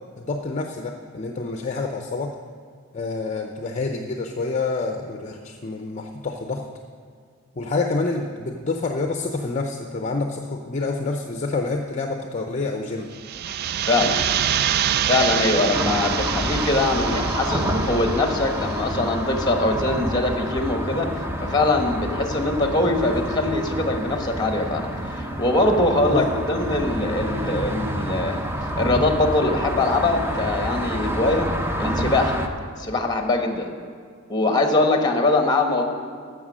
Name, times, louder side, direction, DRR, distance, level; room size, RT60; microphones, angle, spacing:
voice 1, 0.2-2.3 2.9-6.7 7.6-13.1 26.1-26.5, left 3 dB, 35° left, 3 dB, 0.6 m, -28 dB
sound 1, 13.1-18.8, right 10 dB, 50° right, 0.3 m, -26 dB
voice 2, 13.9-14.2 15.0-28.4 28.8-31.5 31.8-32.4 32.8-33.7 34.3-35.9, left 2 dB, 20° left, 4 dB, 1.2 m, -22 dB
sound 2, 15.7-32.5, equal, 10° right, 0.7 m, -28 dB
14.5 x 6.0 x 6.2 m, 2.1 s
head